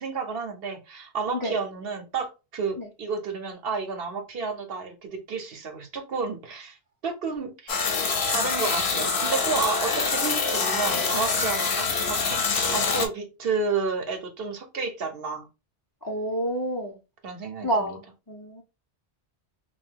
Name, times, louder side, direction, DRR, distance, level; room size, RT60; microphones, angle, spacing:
voice 1, 0.0-6.8 7.0-7.9 8.3-12.4 12.7-15.5 17.2-18.0, right 4 dB, 65° right, 0.9 m, -31 dB
sound 1, 7.7-13.1, left 4 dB, 65° left, 0.8 m, -25 dB
voice 2, 16.0-17.0 17.6-18.0 18.3-18.6, right 1 dB, 25° left, 0.5 m, -28 dB
2.6 x 2.3 x 3.5 m
omnidirectional pair, 1.1 m